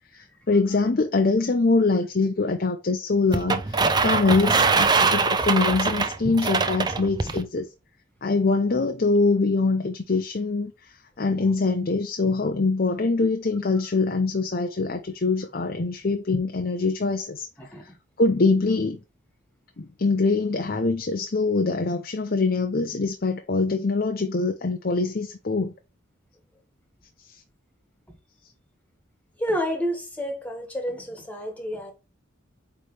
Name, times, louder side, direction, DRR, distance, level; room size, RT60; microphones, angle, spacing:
voice 1, 0.1-7.7 8.2-10.7 11.2-17.5 18.2-19.0 19.8-25.7, left 3 dB, 50° left, 0.6 m, -23 dB
sound 1, 3.3-7.4, right 4 dB, 20° right, 0.5 m, -22 dB
voice 2, 29.4-31.9, equal, 10° left, 1.6 m, -29 dB
8.5 x 3.3 x 3.3 m
head